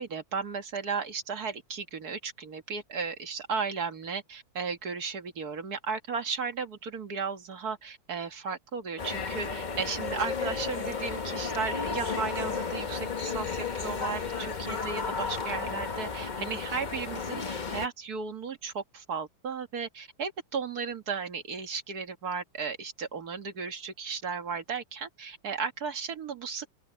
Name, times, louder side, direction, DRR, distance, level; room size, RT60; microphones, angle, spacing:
voice 1, 0.0-17.4 17.7-26.7, right 5 dB, 50° right, 1.8 m, -35 dB
sound 1, 9.0-17.9, left 5 dB, 35° left, 0.8 m, -33 dB
open air
omnidirectional pair, 2.2 m